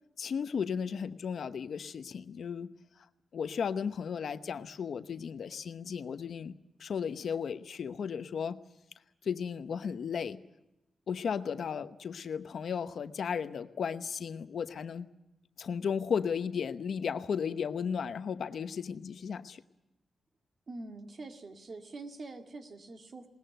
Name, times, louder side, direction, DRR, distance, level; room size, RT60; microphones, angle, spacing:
voice 1, 0.2-2.7 3.3-6.5 6.8-8.6 9.2-10.4 11.1-15.1 15.6-19.6, left 6 dB, 65° left, 11 dB, 0.9 m, -35 dB
voice 2, 20.7-23.3, right 3 dB, 40° right, 5 dB, 2.2 m, -45 dB
21.0 x 19.0 x 9.1 m, 0.92 s
wide cardioid pair, 140°, 0 cm